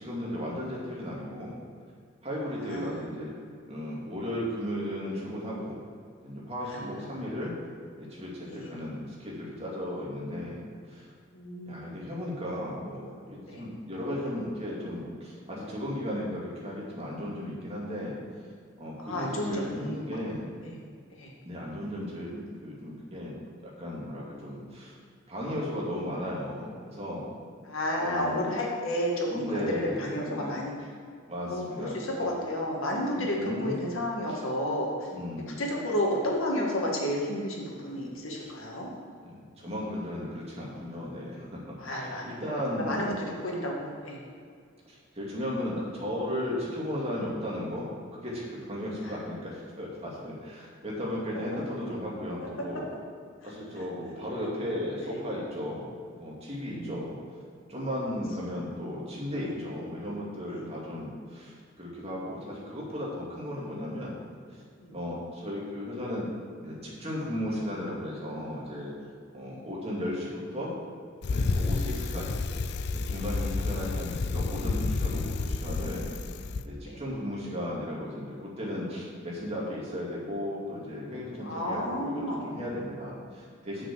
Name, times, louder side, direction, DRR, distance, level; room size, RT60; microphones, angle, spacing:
voice 1, 0.0-1.6 2.2-3.3 3.7-5.8 6.2-7.5 8.0-11.1 11.7-18.2 18.8-20.5 21.5-23.3 23.8-24.9 25.3-27.3 28.0-28.5 29.3-30.5 31.3-32.3 33.1-33.8 34.3-34.4 35.1-35.6 37.8-37.9 38.3-38.5 39.2-43.1 44.9-52.9 53.4-55.8 56.1-57.2 57.7-64.2 64.9-66.3 66.6-68.9 69.3-70.8 71.3-72.4 72.9-76.0 76.6-83.9, left 1 dB, 30° right, -5 dB, 2.4 m, -35 dB
voice 2, 2.6-3.0 6.7-6.9 8.4-8.7 11.3-11.9 13.5-13.6 19.0-20.0 20.6-20.8 21.2-21.3 27.7-30.7 31.4-35.1 35.5-38.9 41.8-42.3 42.7-44.2 52.4-52.5 55.0-55.2 56.6-57.0 59.4-59.5 60.4-60.7 64.8-64.9 76.8-77.0 81.4-82.5, left 1 dB, 80° left, -2 dB, 1.9 m, -32 dB
Bicycle, 71.2-76.6, left 3 dB, 55° left, 0.4 m, -30 dB
7.7 x 6.2 x 7.0 m, 2.2 s
head